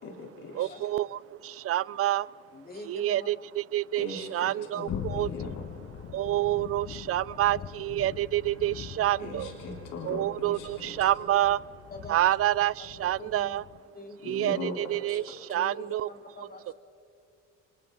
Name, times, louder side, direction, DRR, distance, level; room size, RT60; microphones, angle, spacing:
voice 1, 0.0-0.7 4.0-6.1 9.2-11.1 14.2-14.8 15.1-15.2, left 2 dB, 85° left, -2 dB, 3.7 m, -40 dB
voice 2, 0.5-2.3 2.9-5.3 6.1-9.5 10.0-11.6 12.1-13.6 14.3-16.1 16.7-16.8, right 13 dB, 50° right, 22 dB, 0.4 m, -28 dB
voice 3, 2.5-3.3 6.9-7.0 11.9-12.4 13.2-13.6 13.9-14.4 15.5-16.7, left 2 dB, 30° left, 0 dB, 3.8 m, -45 dB
sound 1, 4.9-13.8, left 9 dB, 50° left, 0.8 m, -42 dB
Bowed string instrument, 7.1-12.6, right 1 dB, 65° left, 4.8 m, -56 dB
29.5 x 24.5 x 3.9 m, 2.4 s
cardioid pair, 90°, 31 cm